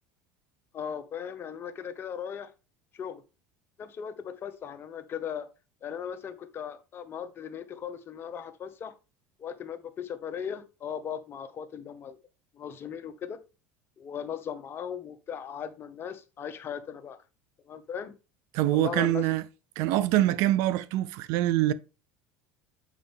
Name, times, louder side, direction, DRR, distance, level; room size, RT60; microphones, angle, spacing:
voice 1, 0.7-2.5 2.9-3.2 3.8-5.5 5.8-8.9 9.4-12.2 12.5-13.4 14.0-17.2 17.6-18.1 18.7-19.3, left 8 dB, 40° left, 1.0 m, -38 dB
voice 2, 18.5-19.4 19.8-21.7, right 14 dB, 65° right, 0.6 m, -24 dB
7.4 x 5.2 x 3.5 m
supercardioid pair, 90°, 6 cm